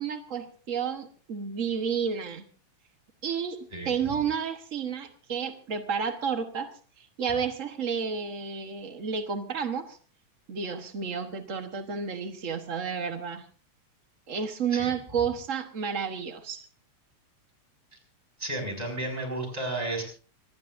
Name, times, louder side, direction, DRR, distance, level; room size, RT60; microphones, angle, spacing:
voice 1, 0.0-2.5 3.2-3.6 3.8-6.7 7.0-10.0 10.5-13.5 14.3-16.6, right 6 dB, 85° right, 7 dB, 0.6 m, -31 dB
voice 2, 18.4-20.0, right 2 dB, 10° right, 2 dB, 5.8 m, -32 dB
25.0 x 19.5 x 2.6 m, 0.39 s
omnidirectional pair, 3.3 m